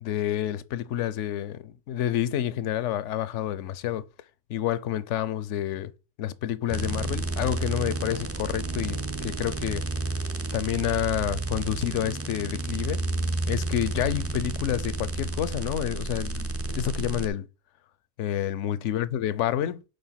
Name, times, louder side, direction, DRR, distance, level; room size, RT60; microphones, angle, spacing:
voice 1, 0.0-4.0 4.5-5.9 6.2-9.9 10.5-13.0 13.5-17.5 18.2-19.8, left 11 dB, 75° left, 0.9 m, -29 dB
sound 1, 6.7-17.3, right 2 dB, 20° right, 0.4 m, -31 dB
5.2 x 4.5 x 5.7 m
omnidirectional pair, 1.3 m